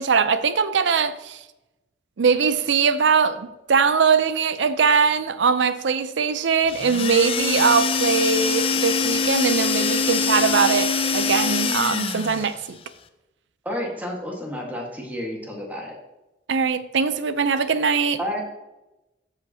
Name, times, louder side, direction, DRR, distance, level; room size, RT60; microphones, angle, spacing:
voice 1, 0.0-1.4 2.2-12.8 16.5-18.2, right 5 dB, 75° right, 0.5 m, -21 dB
sound 1, 6.7-12.5, left 5 dB, 30° left, 0.4 m, -24 dB
voice 2, 13.6-16.0 18.2-18.4, equal, 10° right, 1.5 m, -30 dB
14.0 x 5.1 x 2.8 m
head